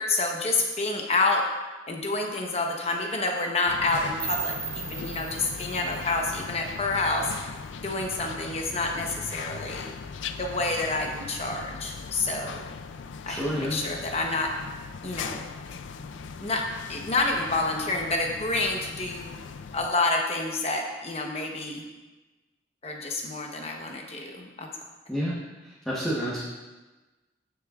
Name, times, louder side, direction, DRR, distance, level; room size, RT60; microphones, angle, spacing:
voice 1, 0.0-1.4 1.9-7.5 7.8-9.9 10.4-12.6 13.3-14.5 15.0-15.5 16.0-16.1 16.4-19.3 19.7-21.8 22.8-24.7, left 3 dB, 35° left, 1 dB, 1.0 m, -28 dB
sound 1, 3.7-19.9, left 5 dB, 80° left, 0.4 m, -39 dB
sound 2, 4.2-7.1, right 7 dB, 65° right, 1.7 m, -37 dB
voice 2, 13.3-13.8 25.1-25.3 25.6-26.4, equal, 5° left, -8 dB, 1.2 m, -29 dB
14.5 x 6.5 x 2.4 m, 1.2 s
head